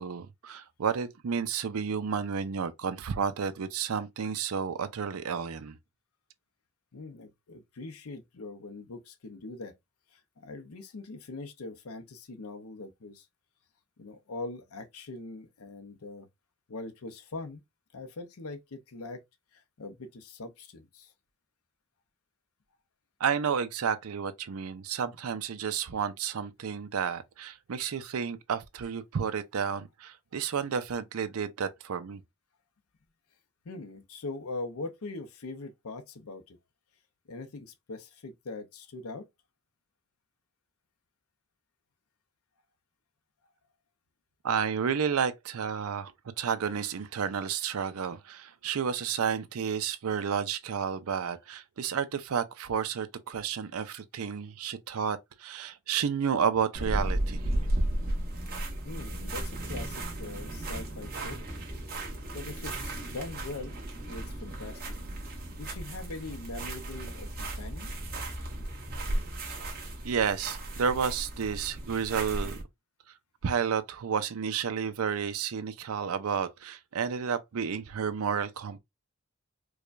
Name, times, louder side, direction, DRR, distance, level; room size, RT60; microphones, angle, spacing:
voice 1, 0.0-5.8 23.2-32.2 44.4-46.1 46.4-57.4 70.0-72.6 73.4-78.8, right 7 dB, 80° right, 0.5 m, -31 dB
voice 2, 6.9-9.7 10.1-13.3 14.0-16.3 16.7-17.6 17.9-19.2 19.5-21.1 33.6-36.6 37.3-39.3 58.8-61.4 62.3-63.7 64.0-64.8 65.6-67.9, left 3 dB, 85° left, 0.7 m, -42 dB
sound 1, 56.7-72.6, right 1 dB, 45° right, 1.2 m, -35 dB
4.7 x 2.2 x 2.5 m
head